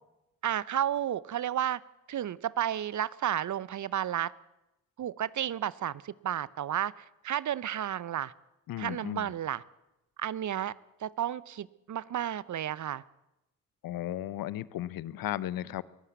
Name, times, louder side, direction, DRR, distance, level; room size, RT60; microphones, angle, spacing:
voice 1, 0.4-1.8 2.1-4.3 5.0-8.3 8.8-9.6 10.2-10.7 11.0-13.0, right 10 dB, 50° right, 20 dB, 0.8 m, -32 dB
voice 2, 8.7-9.3 13.8-15.8, left 13 dB, 65° left, 19 dB, 0.8 m, -35 dB
22.5 x 15.0 x 8.1 m, 0.95 s
hypercardioid pair, 40°, 37 cm